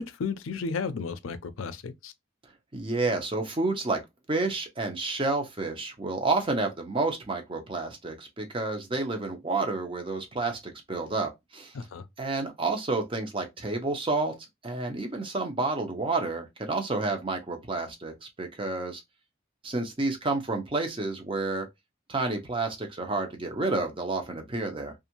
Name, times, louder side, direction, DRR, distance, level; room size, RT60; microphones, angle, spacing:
voice 1, 0.0-2.1 11.7-12.0, left 4 dB, 85° left, 0.4 m, -33 dB
voice 2, 2.7-4.0 4.3-11.7 12.2-14.3 14.6-19.0 19.6-21.7 22.1-24.9, right 3 dB, 25° right, 0.6 m, -30 dB
2.6 x 2.4 x 2.8 m
head